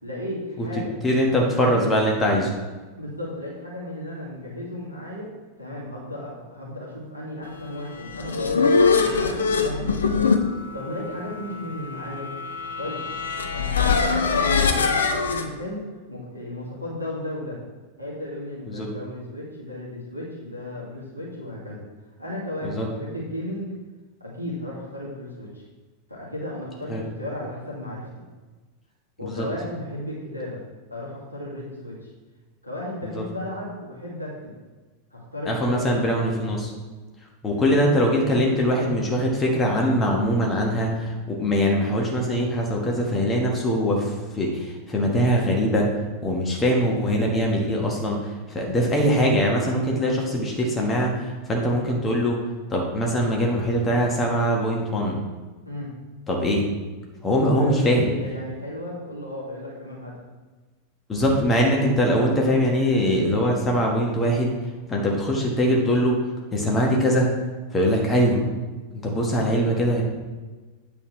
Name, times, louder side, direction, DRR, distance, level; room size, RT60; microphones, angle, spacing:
voice 1, 0.0-1.9 3.0-5.3 5.6-12.3 12.8-13.0 13.5-15.8 16.1-17.6 18.0-21.8 22.2-23.7 24.2-25.6 26.1-28.2 29.2-30.6 30.9-32.1 32.6-34.6 35.1-36.2 37.5-37.9 55.6-55.9 57.5-60.2, left 1 dB, 90° left, -5 dB, 2.1 m, -35 dB
voice 2, 1.0-2.5 18.7-18.9 22.6-22.9 26.9-27.0 29.2-29.4 33.0-33.2 35.4-36.7 37.4-45.9 46.2-52.4 52.7-55.2 56.3-56.7 57.2-58.1 61.1-64.5 64.9-66.2 66.5-67.3 67.7-68.4 68.9-70.0, equal, 20° left, -1 dB, 1.5 m, -22 dB
sound 1, 7.9-15.5, left 5 dB, 70° left, 0.7 m, -23 dB
8.5 x 6.8 x 3.3 m, 1.3 s
figure-of-eight pair, 90°, 0 cm